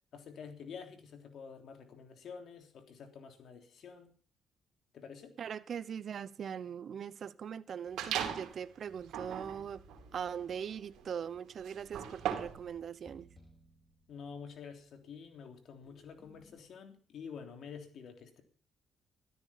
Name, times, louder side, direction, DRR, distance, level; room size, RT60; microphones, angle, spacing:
voice 1, 0.1-4.1 4.9-5.4 14.1-18.4, left 6 dB, 65° left, 3.3 m, -48 dB
voice 2, 5.4-9.8 10.1-13.3, right 8 dB, 55° right, 0.8 m, -41 dB
sound 1, 8.0-8.6 9.0-12.7, right 9 dB, 85° right, 2.9 m, -39 dB
sound 2, 8.9-16.6, equal, 25° left, 5.3 m, -63 dB
13.5 x 13.0 x 5.7 m
cardioid pair, 90°, 0 cm